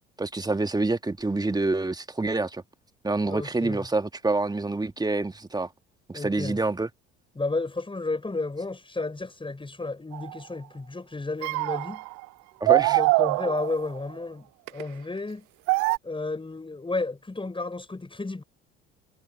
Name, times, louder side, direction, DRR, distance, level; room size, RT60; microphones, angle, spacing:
voice 1, 0.2-2.6 3.0-5.7 6.1-6.9 12.6-13.0, right 3 dB, 10° right, 2.1 m, -27 dB
voice 2, 3.3-3.9 6.1-6.6 7.4-12.0 12.7-15.5 16.0-18.4, left 3 dB, 15° left, 7.1 m, -32 dB
sound 1, 10.1-10.4 11.4-12.3 12.7-14.0 14.7-14.8 15.7-16.0, right 26 dB, 55° right, 0.8 m, -24 dB
figure-of-eight pair, 60°, 35 cm